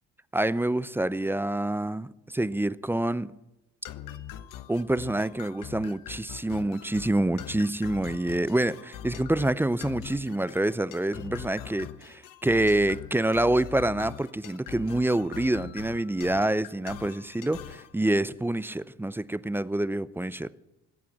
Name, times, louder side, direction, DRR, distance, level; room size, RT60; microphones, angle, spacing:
voice 1, 0.3-3.3 4.7-20.5, right 1 dB, 5° right, 0.5 m, -27 dB
sound 1, 3.8-17.9, left 10 dB, 60° left, 1.1 m, -43 dB
19.0 x 8.4 x 7.6 m
hypercardioid pair, 55°, 36 cm